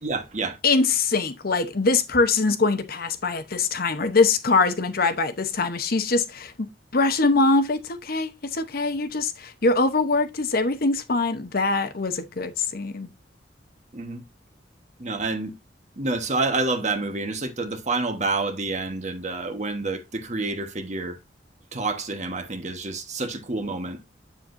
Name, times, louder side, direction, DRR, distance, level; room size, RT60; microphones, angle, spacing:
voice 1, 0.0-0.6 13.9-14.2 15.0-15.5 16.0-21.2 21.7-24.0, right 3 dB, 40° right, 1.3 m, -28 dB
voice 2, 0.6-6.5 6.9-13.1, left 3 dB, 55° left, 0.9 m, -23 dB
8.0 x 7.3 x 2.6 m
head